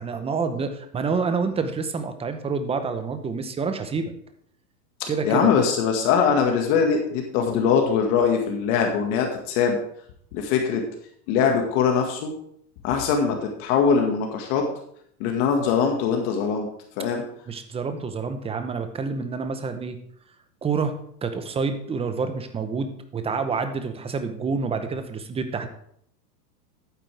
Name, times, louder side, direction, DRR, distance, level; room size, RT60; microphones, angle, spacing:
voice 1, 0.0-4.1 5.1-5.5 17.5-20.0 20.6-20.9 21.2-25.7, right 5 dB, 10° right, 8 dB, 0.8 m, -28 dB
voice 2, 5.0-9.8 10.3-10.8 11.3-12.3 12.8-14.6 15.2-16.7 17.0-17.2, left 6 dB, 50° left, 3 dB, 1.9 m, -22 dB
11.5 x 9.4 x 3.4 m, 0.67 s
supercardioid pair, 130°, 49 cm